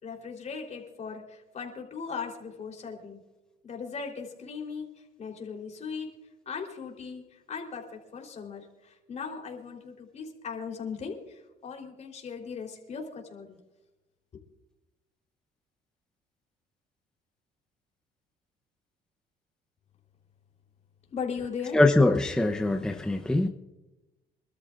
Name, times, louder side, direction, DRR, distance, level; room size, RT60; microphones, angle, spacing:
voice 1, 0.0-3.2 3.6-6.1 6.5-13.6 21.1-21.8, left 5 dB, 40° left, 1 dB, 3.6 m, -38 dB
voice 2, 21.7-23.5, left 2 dB, 5° left, 4 dB, 0.7 m, -23 dB
26.5 x 13.0 x 2.5 m, 1.1 s
cardioid pair, 110°, 17 cm